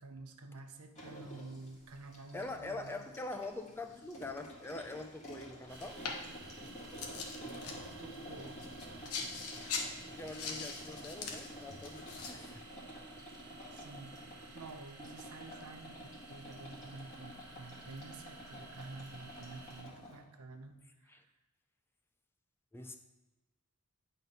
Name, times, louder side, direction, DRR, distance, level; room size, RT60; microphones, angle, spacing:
voice 1, 0.0-3.0 7.7-8.6 9.0-9.4 13.7-14.2 14.5-20.8 21.0-21.3, right 3 dB, 80° right, 6 dB, 0.8 m, -50 dB
sound 1, 1.0-20.2, equal, 30° left, 1.7 m, -50 dB
voice 2, 2.3-6.1 10.1-12.6 21.1-21.2 22.7-23.0, left 2 dB, 10° left, 6 dB, 0.5 m, -44 dB
sound 2, 5.7-12.6, left 4 dB, 80° left, 1.1 m, -44 dB
sound 3, 5.7-19.8, right 3 dB, 50° right, 1.0 m, -55 dB
9.2 x 4.3 x 5.3 m, 1.1 s
head